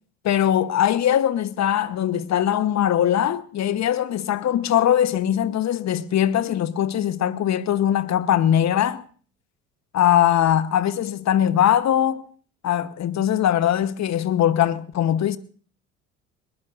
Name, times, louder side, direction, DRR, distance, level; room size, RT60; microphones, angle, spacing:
voice 1, 0.2-9.0 9.9-12.2 12.6-15.4, left 10 dB, 40° left, 1.0 m, -21 dB
20.5 x 20.5 x 2.6 m
hypercardioid pair, 60°, 41 cm